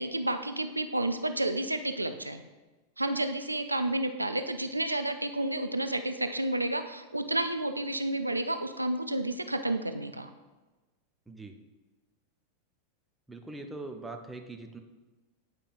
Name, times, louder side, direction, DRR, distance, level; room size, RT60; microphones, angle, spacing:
voice 1, 0.0-2.4 3.0-10.3, right 1 dB, 85° right, 8 dB, 0.3 m, -31 dB
voice 2, 13.3-14.8, right 2 dB, 5° right, 4 dB, 0.6 m, -42 dB
8.8 x 4.9 x 2.5 m, 1.2 s
figure-of-eight pair, 90°, 0 cm